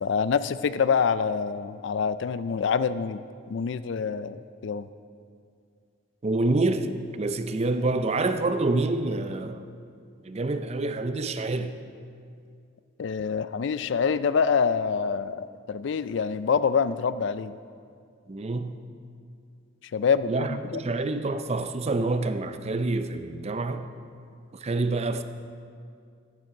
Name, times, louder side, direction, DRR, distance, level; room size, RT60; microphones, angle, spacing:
voice 1, 0.0-3.2 3.5-4.9 13.0-17.6 19.9-20.8, left 6 dB, 60° left, 0.3 m, -26 dB
voice 2, 6.2-6.9 7.1-9.6 10.2-11.8 18.3-18.8 20.3-23.9 24.6-25.2, right 2 dB, 30° right, 0.5 m, -27 dB
10.5 x 9.7 x 5.7 m
head